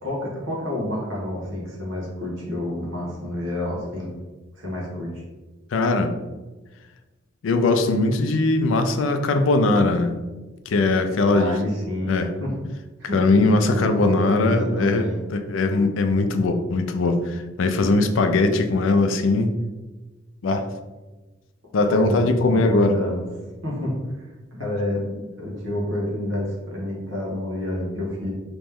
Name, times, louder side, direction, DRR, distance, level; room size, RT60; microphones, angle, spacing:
voice 1, 0.0-4.1 4.5-5.2 11.3-12.5 13.0-15.2 21.8-23.2 23.6-28.3, left 1 dB, 80° right, -4 dB, 1.3 m, -29 dB
voice 2, 5.7-6.2 7.4-10.2 10.7-11.5 12.1-12.3 13.1-15.0 15.3-19.5 20.4-20.6 21.7-22.9 24.6-24.7, left 2 dB, 85° left, 7 dB, 0.4 m, -20 dB
3.1 x 3.0 x 3.5 m, 1.2 s
head